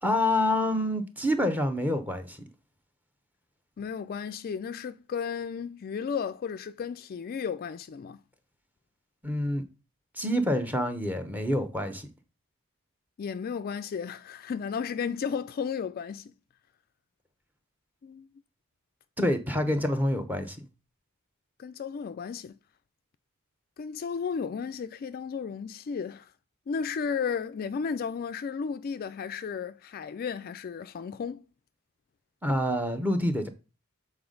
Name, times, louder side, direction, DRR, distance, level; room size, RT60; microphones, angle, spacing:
voice 1, 0.0-2.4 9.2-9.6 10.2-12.1 19.2-20.6 32.4-33.5, left 1 dB, 10° right, 0.9 m, -27 dB
voice 2, 3.8-8.2 13.2-16.3 18.0-18.3 21.6-22.6 23.8-26.3 26.7-31.4, left 6 dB, 45° left, 0.3 m, -34 dB
6.9 x 4.2 x 3.8 m
head